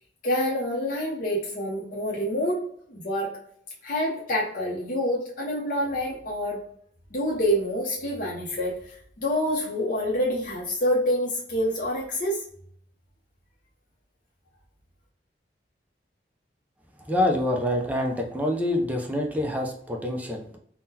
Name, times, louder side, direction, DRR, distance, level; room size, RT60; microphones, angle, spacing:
voice 1, 0.2-2.6 2.9-3.3 3.8-6.6 7.1-12.5, equal, 50° left, -4 dB, 0.6 m, -27 dB
voice 2, 17.1-20.6, left 1 dB, 10° right, 1 dB, 0.4 m, -26 dB
3.7 x 2.1 x 2.7 m, 0.64 s
head